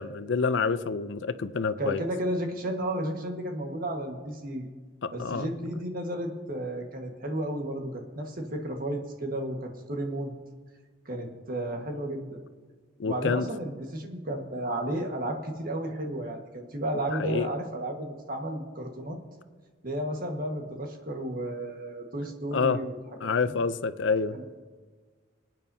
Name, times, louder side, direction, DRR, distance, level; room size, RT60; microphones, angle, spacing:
voice 1, 0.0-2.0 5.0-5.5 13.0-13.5 17.1-17.5 22.5-22.8 23.2-24.3, left 5 dB, 75° left, 13 dB, 0.5 m, -27 dB
voice 2, 1.8-4.7 5.1-10.3 11.0-12.4 13.0-19.2 19.8-23.0 23.2-23.6 24.3-24.4, right 1 dB, 50° right, 3 dB, 1.6 m, -33 dB
26.0 x 9.0 x 2.8 m, 1.5 s
head